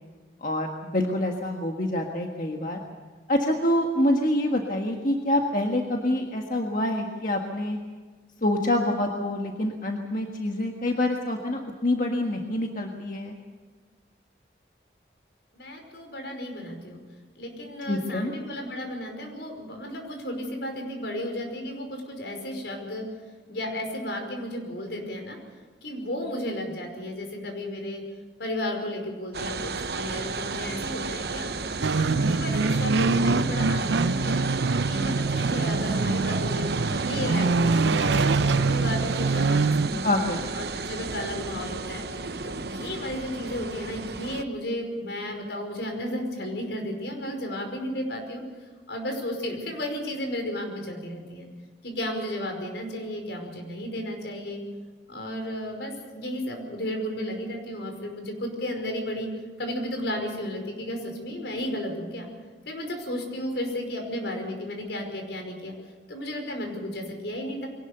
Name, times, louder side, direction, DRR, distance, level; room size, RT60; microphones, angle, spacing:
voice 1, 0.4-2.8 3.3-7.8 8.4-13.4 17.9-18.3 40.0-40.5, left 1 dB, 45° left, 1 dB, 1.6 m, -26 dB
voice 2, 15.5-17.0 17.4-23.1 23.5-25.4 25.8-28.0 28.4-31.5 31.8-34.5 34.8-40.0 40.5-42.0 42.4-48.4 48.9-51.5 51.8-54.6 55.1-59.3 59.6-62.3 62.7-65.7 66.1-67.7, left 1 dB, 75° left, 3 dB, 5.3 m, -33 dB
sound 1, 29.3-44.4, right 3 dB, 65° right, 0.9 m, -32 dB
sound 2, 31.8-39.9, right 3 dB, 80° right, 0.6 m, -24 dB
23.0 x 18.5 x 6.8 m, 1.4 s
head